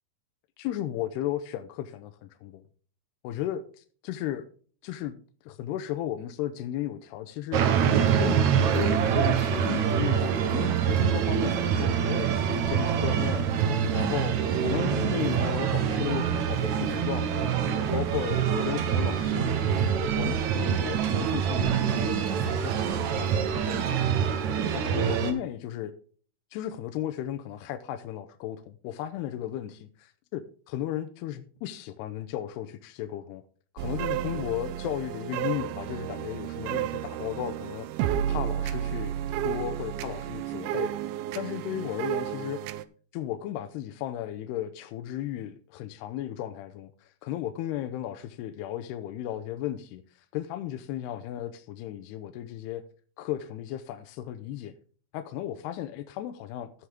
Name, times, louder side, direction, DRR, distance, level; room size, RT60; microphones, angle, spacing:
voice 1, 0.6-2.6 3.2-4.5 4.8-5.2 5.5-7.6 8.2-13.5 13.9-17.4 17.9-24.2 24.7-25.9 26.5-33.4 33.7-37.9 38.3-39.1 39.4-40.9 41.4-42.6 43.1-52.8 53.2-54.7 55.1-56.9, left 12 dB, 85° left, 2.8 m, -35 dB
sound 1, 7.5-25.3, right 8 dB, 65° right, 2.0 m, -25 dB
sound 2, 33.8-42.8, right 11 dB, 80° right, 2.4 m, -32 dB
15.0 x 6.4 x 3.6 m
omnidirectional pair, 4.7 m